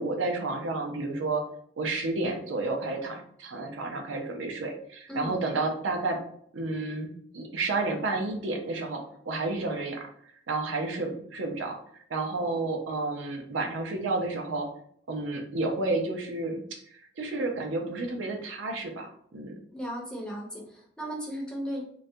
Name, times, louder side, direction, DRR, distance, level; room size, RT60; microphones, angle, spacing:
voice 1, 0.0-1.5 1.8-6.2 6.5-10.1 10.5-14.7 15.1-16.8 17.2-19.5, right 2 dB, 80° right, 2 dB, 0.5 m, -31 dB
voice 2, 19.7-21.8, equal, 5° left, -2 dB, 0.5 m, -36 dB
2.3 x 2.1 x 2.6 m, 0.65 s
head